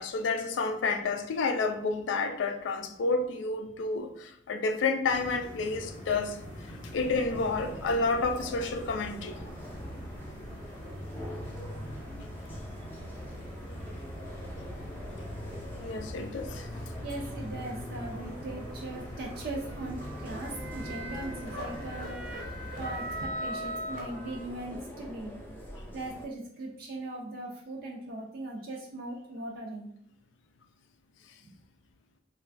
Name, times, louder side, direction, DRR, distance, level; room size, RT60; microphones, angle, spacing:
voice 1, 0.0-6.4 6.7-9.4 15.8-16.7, left 3 dB, 80° left, 0.4 m, -30 dB
sound 1, 5.0-23.3, equal, 30° left, 0.8 m, -42 dB
sound 2, 6.9-26.3, equal, 10° left, 0.4 m, -45 dB
voice 2, 17.0-22.2 22.8-25.4 25.9-29.9, right 2 dB, 55° right, 0.4 m, -39 dB
sound 3, 20.0-24.8, right 1 dB, 80° right, 0.9 m, -39 dB
3.0 x 2.3 x 2.4 m
head